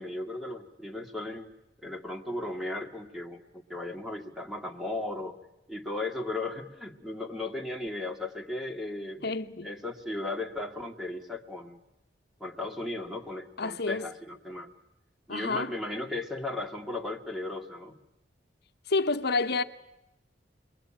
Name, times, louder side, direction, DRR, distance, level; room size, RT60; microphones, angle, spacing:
voice 1, 0.0-1.5 1.8-5.4 5.7-9.4 9.6-11.8 12.4-14.7 15.3-18.0, left 2 dB, ahead, 2.2 m, -36 dB
voice 2, 9.2-9.7 13.6-14.1 15.3-15.7 18.9-19.6, left 3 dB, 65° left, 1.2 m, -29 dB
29.0 x 22.5 x 8.9 m
head